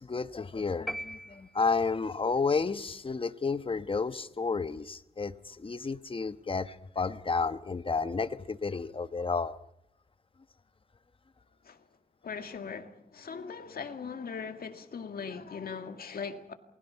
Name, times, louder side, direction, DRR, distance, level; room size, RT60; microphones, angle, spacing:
voice 1, 0.0-9.6, left 4 dB, 35° left, 1.1 m, -31 dB
sound 1, 0.9-2.1, equal, ahead, 0.9 m, -40 dB
voice 2, 12.2-16.5, left 5 dB, 75° left, 2.1 m, -40 dB
28.5 x 21.0 x 5.8 m
cardioid pair, 85°, 16 cm